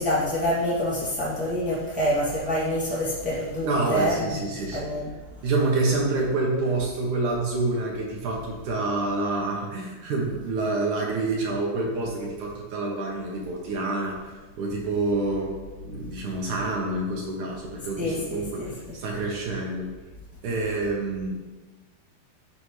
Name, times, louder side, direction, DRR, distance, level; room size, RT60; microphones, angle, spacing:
voice 1, 0.0-4.4 4.7-5.1 18.0-18.9, equal, 5° right, -7 dB, 1.1 m, -27 dB
voice 2, 3.6-4.9 5.4-15.6 15.8-19.9 20.4-21.3, right 2 dB, 65° right, -2 dB, 2.1 m, -27 dB
11.0 x 7.8 x 3.3 m, 1.2 s
omnidirectional pair, 4.9 m